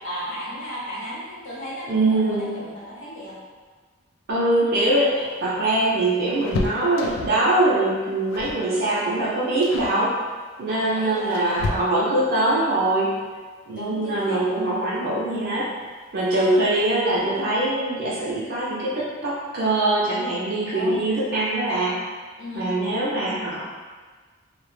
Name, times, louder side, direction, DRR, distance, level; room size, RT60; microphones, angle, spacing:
voice 1, 0.0-3.3 10.7-11.8 13.7-14.4 16.3-16.6 20.7-21.0 22.4-22.7, equal, 70° left, -7 dB, 0.8 m, -35 dB
voice 2, 1.9-2.5 4.3-10.2 10.6-13.1 13.7-15.7 16.1-22.0 22.5-23.6, right 2 dB, 55° right, -6 dB, 0.4 m, -22 dB
sound 1, 4.8-7.5 8.3-8.7 8.9-9.2 9.6-10.0 10.8-12.3 14.0-14.1 14.5-14.6 15.8-16.2 16.5-16.6 16.9-17.1, left 3 dB, 90° left, 0.3 m, -32 dB
2.1 x 2.1 x 3.0 m, 1.5 s
head